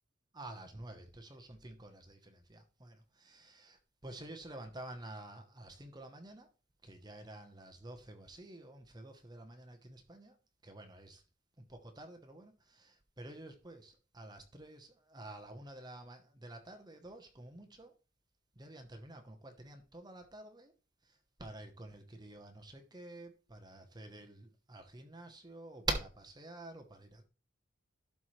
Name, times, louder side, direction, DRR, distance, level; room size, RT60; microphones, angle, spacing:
voice 1, 0.3-6.5 6.8-10.4 10.6-11.2 11.6-17.9 18.5-20.7 21.0-27.3, right 2 dB, 20° right, 1.0 m, -47 dB
11.5 x 4.4 x 3.2 m
head